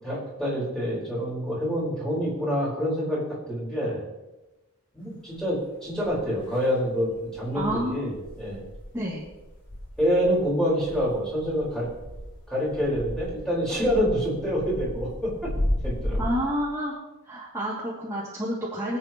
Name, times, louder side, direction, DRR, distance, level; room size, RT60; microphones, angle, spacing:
voice 1, 0.0-4.0 4.9-7.1 7.4-8.6 10.0-11.9 12.5-15.5 15.8-16.3, equal, 5° left, -6 dB, 5.1 m, -27 dB
sound 1, 5.4-5.5 6.0-6.6 7.1-16.3, left 1 dB, 80° left, 4.6 m, -34 dB
voice 2, 7.5-8.1 8.9-9.2 16.2-16.9 17.2-19.0, equal, 15° right, -8 dB, 2.7 m, -29 dB
25.5 x 8.8 x 3.2 m, 1.1 s
head